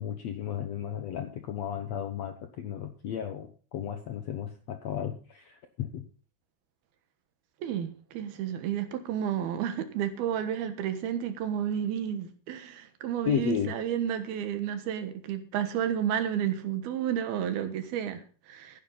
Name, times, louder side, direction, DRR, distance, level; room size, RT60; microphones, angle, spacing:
voice 1, 0.0-6.0 13.2-13.7, left 9 dB, 80° left, 1.5 m, -33 dB
voice 2, 7.6-18.8, right 9 dB, 75° right, 3.2 m, -31 dB
14.5 x 10.0 x 4.0 m
omnidirectional pair, 4.5 m